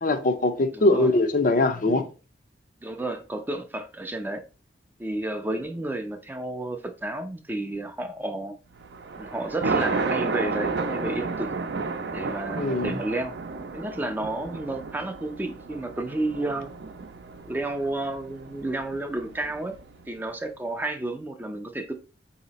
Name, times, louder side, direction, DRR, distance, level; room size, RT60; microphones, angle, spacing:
voice 1, 0.0-2.0 12.6-12.9, left 2 dB, 50° left, 0.5 m, -22 dB
voice 2, 0.7-1.1 2.8-4.4 5.0-8.6 9.2-11.5 12.1-13.4 13.7-16.7 17.4-19.8 20.1-21.9, right 2 dB, 10° right, 0.4 m, -31 dB
Thunder, 8.8-20.1, right 4 dB, 65° right, 0.6 m, -32 dB
4.1 x 2.8 x 4.0 m
head